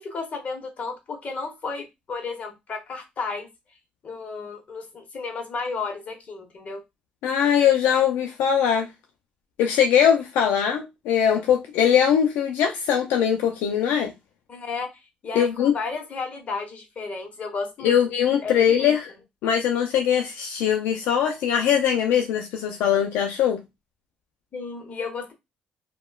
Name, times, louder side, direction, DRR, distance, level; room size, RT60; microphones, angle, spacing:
voice 1, 0.0-3.5 4.0-6.8 14.5-14.9 15.2-18.0 18.4-18.9 24.5-25.3, left 4 dB, 50° left, 1.0 m, -33 dB
voice 2, 7.2-8.9 9.6-14.1 15.3-15.7 17.8-19.1 19.4-23.6, left 8 dB, 85° left, 0.4 m, -21 dB
2.9 x 2.2 x 2.2 m
cardioid pair, 80°, 3 cm